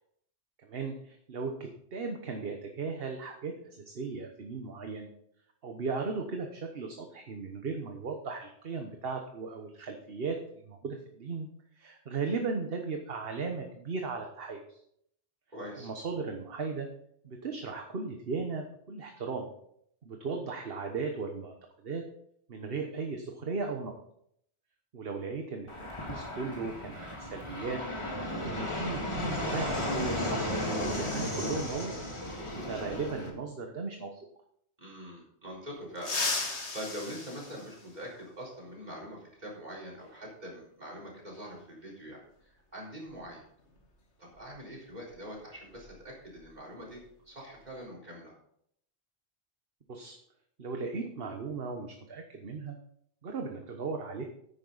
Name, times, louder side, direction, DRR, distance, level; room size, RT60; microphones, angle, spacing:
voice 1, 0.6-5.1 5.6-11.5 11.8-14.8 15.8-16.9 17.2-19.5 20.0-21.5 21.8-22.0 22.5-23.9 24.9-27.8 28.3-31.9 32.5-34.2 49.9-50.1 50.6-52.8 53.2-54.3, right 4 dB, 60° right, 4 dB, 1.3 m, -37 dB
voice 2, 15.5-15.9 31.1-31.7 34.8-43.4 44.2-48.4, equal, 40° right, -2 dB, 4.1 m, -44 dB
Fixed-wing aircraft airplane, 25.7-33.3, left 1 dB, 25° left, 2.0 m, -34 dB
sound 1, 36.0-38.4 40.0-40.1 41.3-41.4 43.1-43.2 43.6-43.8 44.3-46.5 46.7-47.0 47.4-47.8, left 3 dB, 75° left, 2.1 m, -37 dB
11.0 x 9.3 x 4.0 m, 0.70 s
omnidirectional pair, 1.2 m